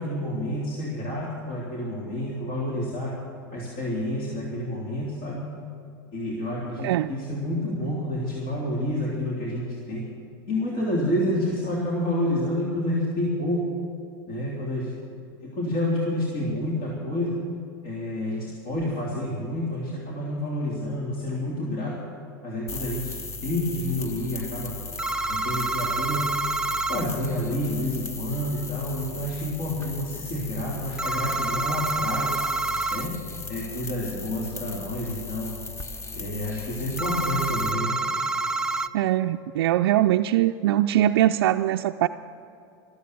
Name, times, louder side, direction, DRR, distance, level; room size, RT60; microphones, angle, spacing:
voice 1, 0.0-3.1 3.5-5.5 6.1-10.0 10.5-13.6 14.3-14.9 15.4-17.3 17.8-22.0 22.4-23.0 23.4-24.7 25.3-26.3 26.9-32.3 32.9-33.2 33.5-35.5 36.1-38.0, left 1 dB, 50° left, -4 dB, 3.3 m, -29 dB
sound 1, 22.7-37.7, left 4 dB, 20° left, 0.9 m, -38 dB
sound 2, 25.0-27.1 31.0-33.1 37.0-38.9, right 2 dB, 5° right, 0.4 m, -27 dB
voice 2, 38.9-42.1, right 13 dB, 75° right, 5 dB, 0.4 m, -22 dB
13.5 x 13.5 x 6.8 m, 2.7 s
hypercardioid pair, 115°, 13 cm